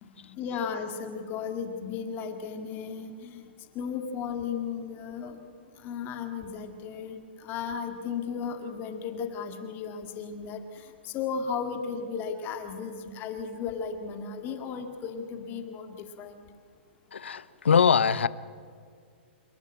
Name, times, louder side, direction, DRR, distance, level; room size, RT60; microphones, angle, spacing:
voice 1, 0.0-3.5 3.7-5.4 5.7-16.4, left 6 dB, 35° left, 6 dB, 2.2 m, -35 dB
voice 2, 17.1-18.3, left 6 dB, 85° left, 18 dB, 0.8 m, -22 dB
28.0 x 12.0 x 8.9 m, 2.1 s
hypercardioid pair, 125°, 6 cm